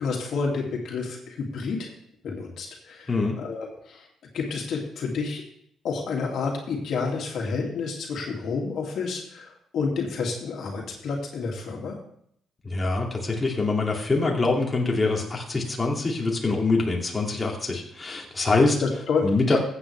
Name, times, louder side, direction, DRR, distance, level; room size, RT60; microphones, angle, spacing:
voice 1, 0.0-1.9 2.2-4.1 4.3-5.4 5.8-12.0 18.8-19.2, left 4 dB, 70° left, 0 dB, 2.4 m, -29 dB
voice 2, 12.6-18.8 19.2-19.6, left 3 dB, 25° left, -2 dB, 2.6 m, -24 dB
15.0 x 8.3 x 3.4 m, 0.68 s
cardioid pair, 90°, 0 cm